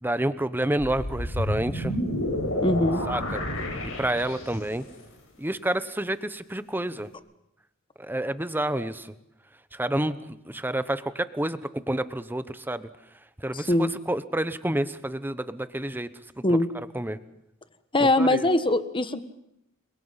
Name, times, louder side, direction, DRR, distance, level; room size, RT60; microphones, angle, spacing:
voice 1, 0.0-1.9 3.1-3.4 4.0-4.8 5.4-7.1 8.0-9.1 9.7-10.2 10.5-12.9 13.4-16.1 16.9-17.2 18.0-18.4, right 1 dB, 10° right, 13 dB, 1.0 m, -29 dB
sound 1, 0.8-4.8, left 1 dB, 85° left, 6.3 m, -30 dB
voice 2, 2.6-3.0 13.5-13.9 16.4-16.7 17.9-19.2, left 1 dB, 25° left, 11 dB, 1.4 m, -22 dB
30.0 x 23.0 x 5.8 m, 0.81 s
head